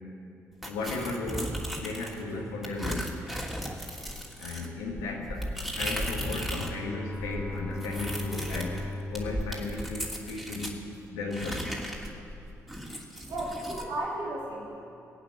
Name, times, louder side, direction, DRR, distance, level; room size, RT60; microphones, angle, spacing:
sound 1, 0.6-2.2 2.6-6.8 7.1-10.8 11.3-13.9, equal, 5° right, 2.9 m, -36 dB
voice 1, 0.7-3.2 4.4-5.5 5.8-8.8 9.1-10.8 11.1-11.7, left 3 dB, 90° left, -3 dB, 1.6 m, -35 dB
Bowed string instrument, 6.3-10.6, left 1 dB, 20° left, 2.0 m, -38 dB
voice 2, 13.3-14.8, right 1 dB, 70° right, -5 dB, 2.6 m, -34 dB
20.0 x 8.7 x 7.2 m, 2.8 s
hypercardioid pair, 45°, 7 cm